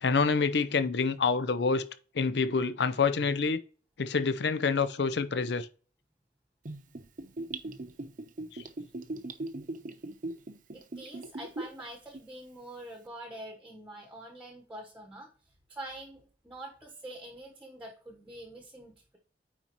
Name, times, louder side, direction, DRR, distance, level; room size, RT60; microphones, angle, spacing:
voice 1, 0.0-1.8 2.1-3.6 4.0-5.7 8.5-8.6, left 4 dB, 65° left, 0.6 m, -27 dB
Gurgling / Bathtub (filling or washing), 6.7-11.8 12.1-12.2, right 2 dB, 50° right, 0.7 m, -39 dB
voice 2, 10.7-15.3 15.7-19.2, right 1 dB, 10° right, 1.1 m, -45 dB
9.1 x 4.4 x 3.0 m
head